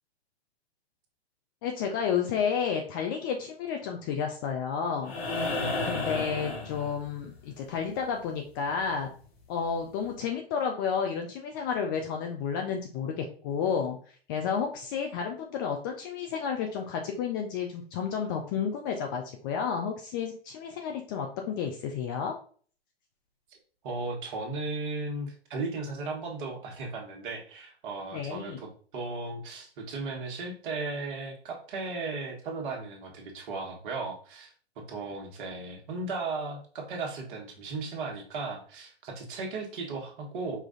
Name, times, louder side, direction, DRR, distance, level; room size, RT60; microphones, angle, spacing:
voice 1, 1.6-5.2 5.8-9.1 9.5-14.0 14.3-22.4 28.1-28.6, left 6 dB, 20° left, 3 dB, 0.3 m, -31 dB
sound 1, 5.0-7.4 9.2-9.3, left 2 dB, 70° left, 2.0 m, -32 dB
voice 2, 23.8-34.5 34.9-40.6, right 3 dB, 50° right, 2 dB, 1.4 m, -36 dB
5.0 x 2.5 x 3.7 m, 0.44 s
hypercardioid pair, 125°, 32 cm